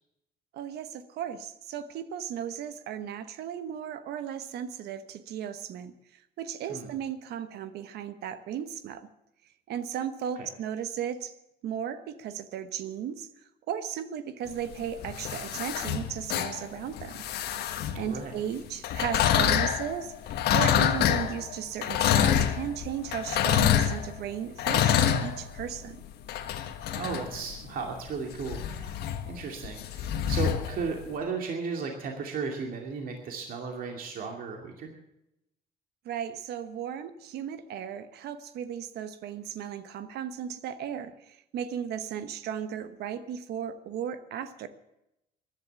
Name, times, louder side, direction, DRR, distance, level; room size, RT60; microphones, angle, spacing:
voice 1, 0.5-5.9 6.4-9.1 9.7-11.3 11.6-13.3 13.7-17.2 17.9-26.0 36.0-44.7, right 9 dB, 75° right, 11 dB, 1.2 m, -35 dB
sound 1, 14.7-18.2 18.8-31.2, left 10 dB, 75° left, 1.4 m, -27 dB
voice 2, 26.9-34.9, right 5 dB, 55° right, 2 dB, 2.5 m, -35 dB
15.0 x 11.5 x 7.1 m, 0.86 s
cardioid pair, 110°, 17 cm